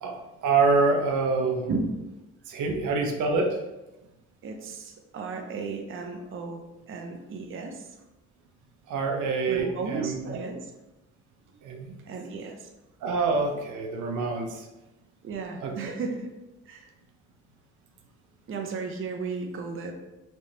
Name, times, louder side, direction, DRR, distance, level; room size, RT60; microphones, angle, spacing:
voice 1, 0.4-1.7 2.5-3.6 8.9-10.5 11.6-12.0 13.0-14.7 15.6-15.9, right 3 dB, 80° right, 2 dB, 0.7 m, -26 dB
voice 2, 4.4-7.9 9.5-10.7 12.1-12.7 15.2-16.3 16.7-16.9 18.5-19.9, right 4 dB, 45° right, 3 dB, 0.6 m, -34 dB
4.5 x 3.2 x 2.8 m, 1.0 s
cardioid pair, 90°, 30 cm